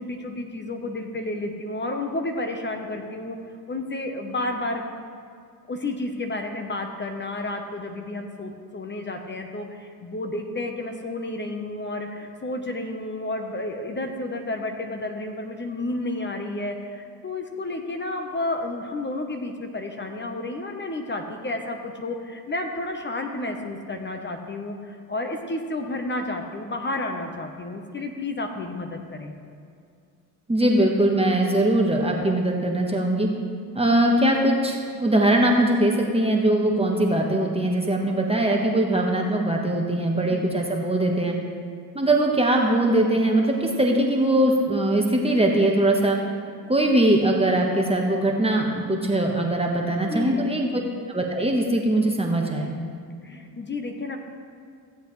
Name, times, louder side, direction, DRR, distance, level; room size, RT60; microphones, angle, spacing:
voice 1, 0.0-3.4 3.7-4.8 5.7-29.4 40.1-40.4 49.8-50.9 53.2-54.2, left 2 dB, 25° left, 4 dB, 1.1 m, -31 dB
voice 2, 30.5-33.3 33.7-41.3 41.9-46.2 46.7-50.7 51.1-52.7, right 1 dB, 15° right, 0 dB, 1.3 m, -21 dB
15.5 x 7.9 x 3.3 m, 2.3 s
hypercardioid pair, 65°, 45 cm